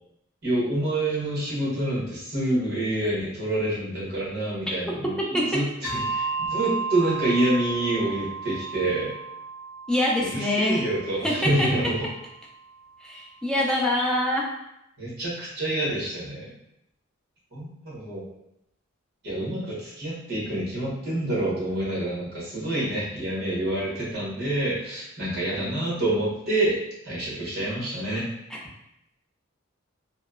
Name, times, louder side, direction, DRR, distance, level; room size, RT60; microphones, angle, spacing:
voice 1, 0.4-9.2 10.2-12.0 15.0-16.5 17.5-18.3 19.2-26.8 27.0-28.3, right 1 dB, 50° right, -8 dB, 1.2 m, -27 dB
Bell, 5.8-12.7, right 4 dB, 20° left, 0.7 m, -34 dB
voice 2, 9.9-10.8 11.2-11.7 13.0-14.5 28.5-28.6, left 1 dB, 5° left, -4 dB, 0.4 m, -24 dB
2.9 x 2.0 x 2.4 m, 0.82 s
head